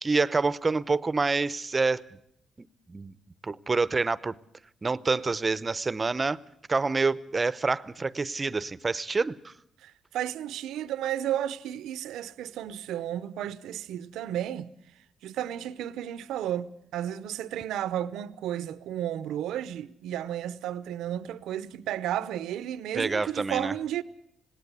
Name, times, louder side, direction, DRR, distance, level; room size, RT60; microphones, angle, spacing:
voice 1, 0.0-2.0 2.9-3.1 3.4-4.3 4.8-6.4 6.7-9.5 22.9-23.8, right 3 dB, 30° right, 0.7 m, -27 dB
voice 2, 9.8-14.7 15.2-24.0, right 11 dB, 85° right, 0.7 m, -33 dB
19.0 x 18.0 x 8.2 m
cardioid pair, 75°, 0 cm